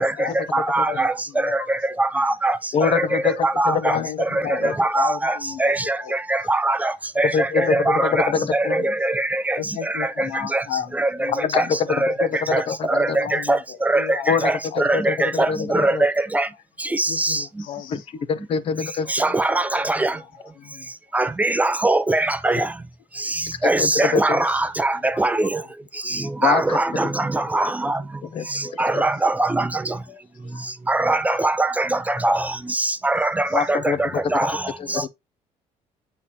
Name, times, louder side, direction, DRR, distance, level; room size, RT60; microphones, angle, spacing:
voice 1, 0.0-1.8 2.1-2.3 3.1-3.2 3.6-6.8 7.5-8.9 9.6-12.0 12.9-14.3 14.7-15.1 15.8-15.9 16.9-18.1 19.0-19.1 19.5-19.6 20.1-20.3 20.6-20.9 22.5-22.6 23.2-23.6 24.1-24.2 24.6-24.7 25.0-25.4 26.0-26.4 27.1-27.3 28.5-29.5 30.1-30.7 31.3-31.5 33.5-33.6 34.5-34.7, left 9 dB, 90° left, 1.1 m, -35 dB
voice 2, 0.5-1.1 2.0-2.5 2.9-3.9 4.8-5.3 5.6-5.8 6.3-6.9 7.2-7.3 7.6-8.3 8.5-9.6 10.5-10.6 11.0-11.1 11.5-11.6 12.0-12.1 12.5-12.6 12.9-13.1 13.5-13.6 13.9-14.0 14.4-14.5 14.9-16.1 16.3-16.4 17.0-17.3 19.2-20.1 21.1-22.6 23.6-25.5 26.4-27.0 27.5-27.9 28.8-29.6 30.9-31.9 32.2-32.4 33.0-33.6 34.3-34.5, right 2 dB, 10° right, 0.5 m, -21 dB
voice 3, 2.7-3.5 3.7-4.1 4.6-4.7 7.2-8.8 11.5-13.2 14.3-14.5 14.9-16.0 17.9-18.0 18.3-19.1 23.6-24.4 26.4-27.1 28.2-28.5 28.9-29.0 33.5-34.5 34.8-35.1, left 6 dB, 45° left, 0.8 m, -24 dB
8.8 x 3.4 x 4.2 m
cardioid pair, 150°, 14 cm